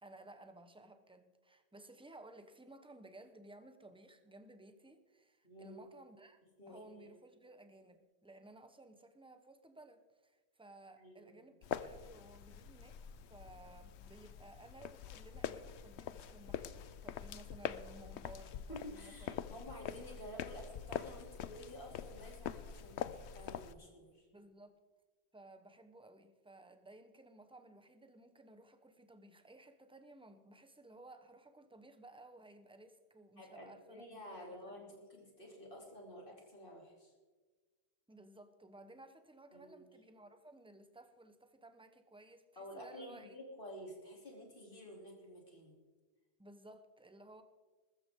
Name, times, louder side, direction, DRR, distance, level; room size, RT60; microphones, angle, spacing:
voice 1, 0.0-6.4 6.7-13.0 13.3-19.3 24.3-24.8 25.3-34.9 38.1-43.4 46.4-47.4, right 2 dB, 5° right, 8 dB, 0.8 m, -57 dB
voice 2, 5.4-5.8 6.6-7.1 11.0-11.3 18.7-24.3 33.4-37.1 39.5-39.8 42.6-45.8, equal, 55° left, -1 dB, 3.3 m, -51 dB
sound 1, 11.6-23.7, left 9 dB, 90° left, 0.9 m, -45 dB
20.5 x 13.5 x 3.7 m, 1.4 s
omnidirectional pair, 1.1 m